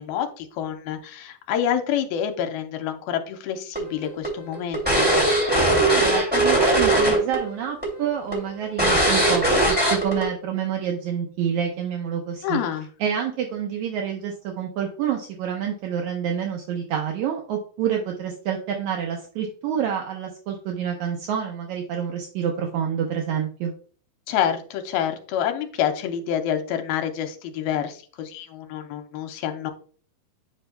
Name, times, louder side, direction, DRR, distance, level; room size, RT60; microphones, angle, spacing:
voice 1, 0.0-5.1 12.4-12.9 24.3-29.7, left 9 dB, 80° left, 6 dB, 2.5 m, -27 dB
sound 1, 3.8-7.4 7.6-7.9 8.3-8.4 8.8-10.2, right 1 dB, 5° right, 1.6 m, -19 dB
voice 2, 5.9-9.6 9.9-12.6 13.0-23.7, right 8 dB, 75° right, 1 dB, 1.7 m, -28 dB
9.7 x 5.3 x 2.2 m, 0.43 s
omnidirectional pair, 4.3 m